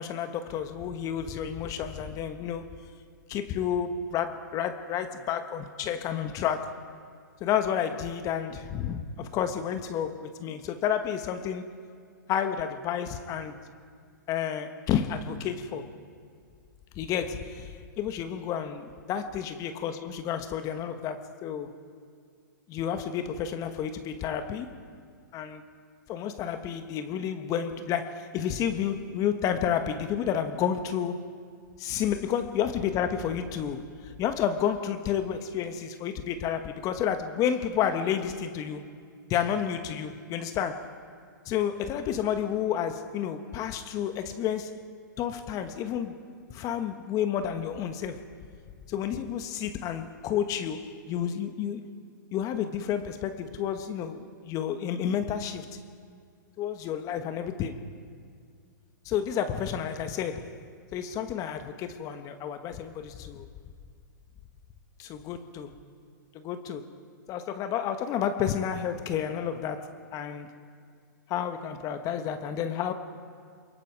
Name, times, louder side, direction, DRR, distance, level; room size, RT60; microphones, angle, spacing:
voice 1, 0.0-2.7 3.3-6.8 7.4-11.6 12.3-13.6 14.3-15.9 16.9-17.7 18.0-21.7 22.7-24.8 25.3-25.6 26.1-31.3 31.8-38.8 39.3-41.0 41.4-44.8 45.2-46.1 46.5-48.3 48.9-51.8 52.3-55.7 56.6-57.8 59.0-60.6 60.9-63.5 65.0-65.7 66.3-66.9 67.3-70.5 71.3-72.9, left 8 dB, 30° left, 1.3 m, -30 dB
28.5 x 22.5 x 4.8 m
hypercardioid pair, 120°, 11 cm